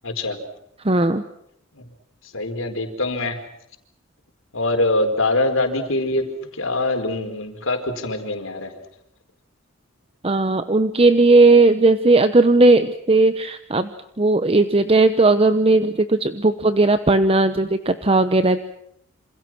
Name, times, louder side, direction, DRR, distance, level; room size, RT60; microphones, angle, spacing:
voice 1, 0.0-0.4 1.8-1.9 2.3-3.4 4.5-6.3 6.5-8.7, left 2 dB, 85° left, 6 dB, 4.6 m, -23 dB
voice 2, 0.8-1.2 10.2-13.9 14.2-18.6, right 2 dB, 30° right, 10 dB, 1.0 m, -16 dB
28.0 x 27.5 x 6.2 m, 0.75 s
head